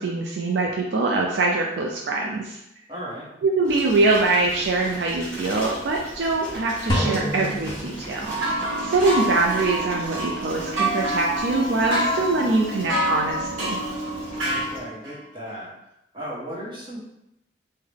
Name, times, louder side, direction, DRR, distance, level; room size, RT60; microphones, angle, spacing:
voice 1, 0.0-2.6 3.4-8.3 8.8-13.8, right 3 dB, 60° right, -1 dB, 0.4 m, -23 dB
voice 2, 2.9-3.3 14.4-15.7 16.1-17.0, equal, 25° right, -6 dB, 1.1 m, -35 dB
Bicycle, 3.6-14.8, equal, 5° left, 1.3 m, -39 dB
sound 1, 6.9-8.7, equal, 25° left, 0.5 m, -27 dB
sound 2, 8.2-15.1, right 1 dB, 80° right, 0.9 m, -27 dB
3.7 x 2.1 x 3.3 m, 0.82 s
head